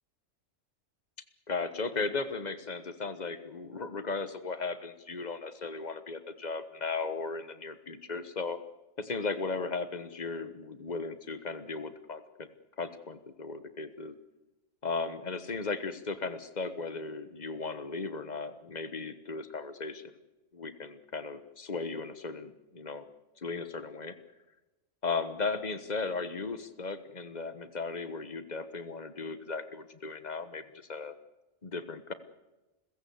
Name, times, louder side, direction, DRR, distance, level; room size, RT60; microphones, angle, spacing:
voice 1, 1.5-8.6 9.0-12.5 12.8-14.2 14.8-20.0 20.5-23.1 23.4-24.1 25.0-31.1 31.6-32.1, left 4 dB, 35° left, 11 dB, 1.3 m, -36 dB
30.0 x 15.5 x 8.0 m, 1.1 s
omnidirectional pair, 1.3 m